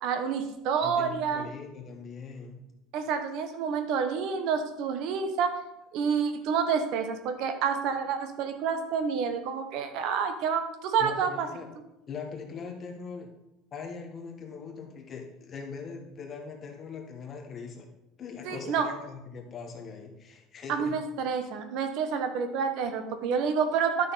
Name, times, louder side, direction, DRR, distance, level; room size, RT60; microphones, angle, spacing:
voice 1, 0.0-1.5 2.9-5.5 5.9-11.5 18.4-18.9 20.7-24.1, right 6 dB, 60° right, 8 dB, 0.9 m, -28 dB
voice 2, 0.8-2.6 11.0-11.7 12.1-13.3 13.7-17.9 18.2-21.0, left 5 dB, 30° left, 2 dB, 1.3 m, -41 dB
10.5 x 6.1 x 4.0 m, 0.91 s
cardioid pair, 155°, 0 cm